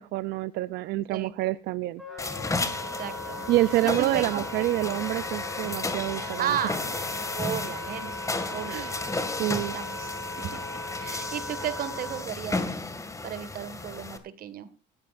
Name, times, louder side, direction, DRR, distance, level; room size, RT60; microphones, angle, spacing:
voice 1, 0.0-2.0 3.5-6.6 8.7-8.9 9.4-9.8, right 16 dB, 85° right, 14 dB, 0.6 m, -27 dB
Wind instrument woodwind instrument, 2.0-12.3, left 2 dB, ahead, 5.5 m, -38 dB
sound 1, 2.2-14.2, left 3 dB, 20° left, 2.2 m, -34 dB
voice 2, 2.9-3.5 3.8-4.6 6.2-6.8 7.3-8.9 9.7-10.1 10.4-12.6 13.2-14.7, right 9 dB, 60° right, 12 dB, 1.9 m, -34 dB
20.0 x 13.5 x 2.6 m, 0.30 s
cardioid pair, 110°, 17 cm